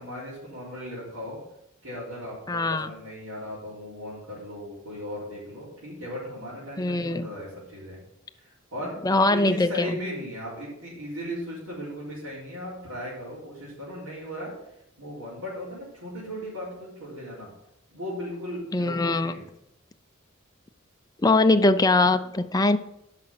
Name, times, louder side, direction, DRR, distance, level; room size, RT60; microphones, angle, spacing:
voice 1, 0.0-1.4 1.8-8.0 8.4-9.0 9.2-14.5 15.0-17.5 17.9-19.4, equal, 85° right, -10 dB, 4.1 m, -37 dB
voice 2, 2.5-2.9 6.8-7.3 9.0-10.0 18.7-19.3 21.2-22.8, left 2 dB, 20° left, 9 dB, 0.4 m, -22 dB
10.0 x 5.8 x 5.9 m, 0.82 s
head